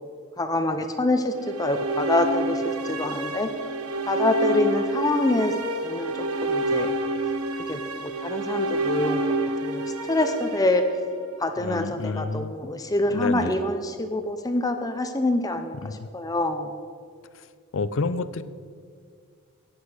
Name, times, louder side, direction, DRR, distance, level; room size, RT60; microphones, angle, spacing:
voice 1, 0.4-1.3 1.6-3.5 4.1-5.5 5.8-6.1 6.4-6.9 7.7-9.2 9.6-9.8 10.1-10.8 11.4-16.7, left 2 dB, 15° left, 7 dB, 0.6 m, -25 dB
sound 1, 1.3-11.5, right 2 dB, 85° right, 1.1 m, -28 dB
voice 2, 11.6-12.6 13.1-13.6 15.8-16.1 17.3-17.4 17.7-18.4, left 3 dB, 60° left, 14 dB, 0.5 m, -29 dB
14.0 x 10.0 x 5.0 m, 2.2 s
head